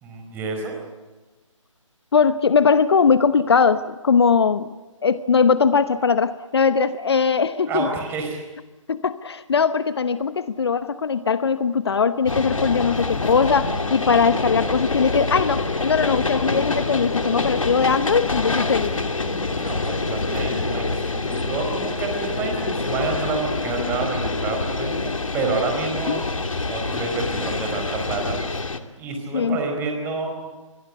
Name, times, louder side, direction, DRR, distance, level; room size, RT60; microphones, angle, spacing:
voice 1, 0.0-0.7 7.7-8.4 19.6-26.2 26.7-28.7 29.0-30.4, right 4 dB, 10° right, 3 dB, 4.4 m, -28 dB
voice 2, 2.1-4.8 5.0-7.9 8.9-18.9 26.1-26.2 29.3-29.6, left 5 dB, 50° left, 14 dB, 0.9 m, -20 dB
sound 1, 12.3-28.8, left 3 dB, 75° left, 2.4 m, -26 dB
26.0 x 22.0 x 8.1 m, 1.2 s
figure-of-eight pair, 150°, 17 cm